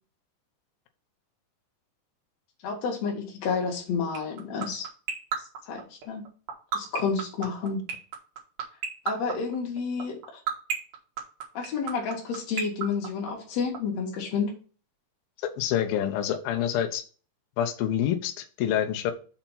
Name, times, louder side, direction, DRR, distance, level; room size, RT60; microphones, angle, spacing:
voice 1, 2.6-4.9 5.7-6.3 6.7-7.8 9.0-10.4 11.5-14.5, left 5 dB, 50° left, 2.4 m, -30 dB
sound 1, 4.1-13.8, right 7 dB, 60° right, 1.9 m, -29 dB
voice 2, 15.5-17.0 17.6-19.1, left 10 dB, 75° left, 2.2 m, -27 dB
6.9 x 4.4 x 5.8 m
omnidirectional pair, 5.4 m